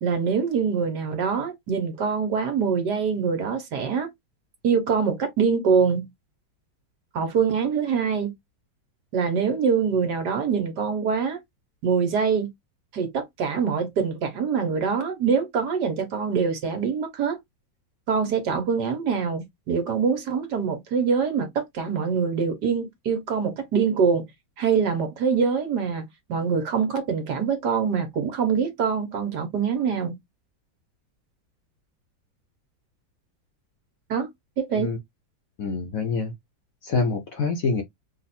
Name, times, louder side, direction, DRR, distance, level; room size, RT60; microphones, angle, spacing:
voice 1, 0.0-4.1 4.6-6.1 7.1-8.3 9.1-11.4 11.8-12.5 12.9-17.4 18.1-24.2 24.6-26.0 26.3-30.2 34.1-34.3 34.6-34.9, right 6 dB, 60° right, 1.6 m, -24 dB
voice 2, 35.6-36.3 36.8-37.8, left 4 dB, 55° left, 1.1 m, -26 dB
4.0 x 2.5 x 4.2 m
omnidirectional pair, 2.1 m